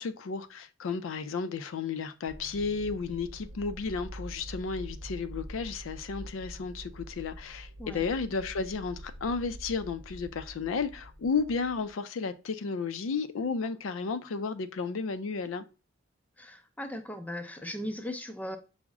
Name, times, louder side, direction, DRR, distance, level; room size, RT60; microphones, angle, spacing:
voice 1, 0.0-15.6, left 5 dB, 75° left, 0.4 m, -33 dB
sound 1, 2.3-11.9, right 1 dB, 85° right, 0.8 m, -45 dB
voice 2, 16.4-18.6, left 1 dB, 10° left, 0.4 m, -38 dB
5.9 x 2.1 x 3.5 m
head